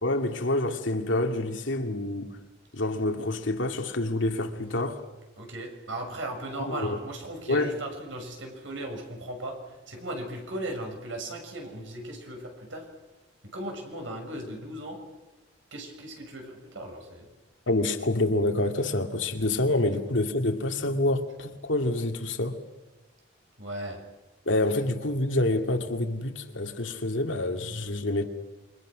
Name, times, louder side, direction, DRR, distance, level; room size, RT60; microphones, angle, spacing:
voice 1, 0.0-2.3 2.7-5.0 6.6-7.0 7.5-7.7 17.7-22.6 24.5-28.3, left 2 dB, 85° left, 2.2 m, -27 dB
voice 2, 5.4-12.9 13.5-15.0 15.7-17.3 23.6-24.0, right 1 dB, 85° right, 6.9 m, -37 dB
28.0 x 24.5 x 6.3 m
head